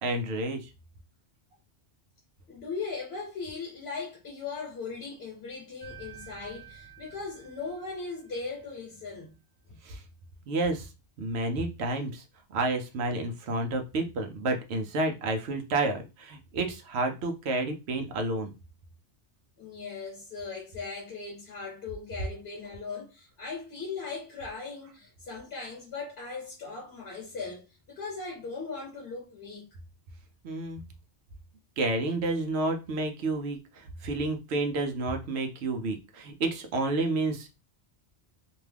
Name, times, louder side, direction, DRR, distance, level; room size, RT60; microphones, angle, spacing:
voice 1, 0.0-0.7 9.8-10.0 10.5-10.9 11.2-12.2 12.5-18.5 30.4-30.8 31.8-37.5, right 2 dB, 80° right, 0.9 m, -30 dB
voice 2, 2.5-9.3 9.7-9.8 19.6-29.7, left 4 dB, 70° left, 1.1 m, -38 dB
sound 1, 5.8-8.7, right 8 dB, 60° right, 0.6 m, -50 dB
2.8 x 2.3 x 3.3 m
omnidirectional pair, 1.1 m